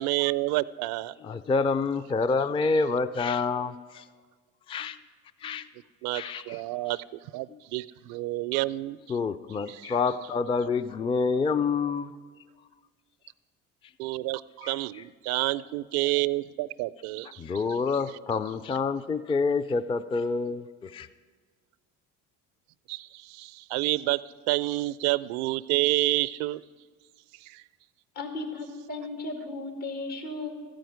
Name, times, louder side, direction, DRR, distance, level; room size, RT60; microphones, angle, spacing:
voice 1, 0.0-1.1 6.0-9.2 9.7-9.9 14.0-17.8 22.9-26.6 27.4-27.6, right 18 dB, 70° right, 17 dB, 0.5 m, -29 dB
voice 2, 1.2-4.0 4.7-5.0 5.4-5.7 6.1-6.6 9.1-12.1 14.6-14.7 17.4-21.1, left 4 dB, 15° left, 12 dB, 0.3 m, -27 dB
voice 3, 28.2-30.5, left 2 dB, 75° left, 5 dB, 2.2 m, -35 dB
13.5 x 5.1 x 9.2 m, 1.5 s
hypercardioid pair, 65°, 39 cm